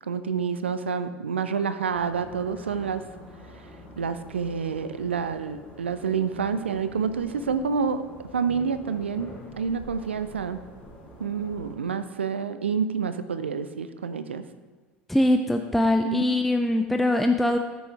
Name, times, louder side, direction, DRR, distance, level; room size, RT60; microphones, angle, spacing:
voice 1, 0.0-3.0 4.0-8.0 8.3-10.6 11.2-14.4 16.0-16.4, right 6 dB, 75° right, 12 dB, 0.5 m, -28 dB
sound 1, 1.9-11.7, left 1 dB, 20° left, 2.6 m, -46 dB
voice 2, 15.1-17.6, left 1 dB, ahead, 5 dB, 0.4 m, -22 dB
13.5 x 6.2 x 3.3 m, 1.4 s
figure-of-eight pair, 70°, 6 cm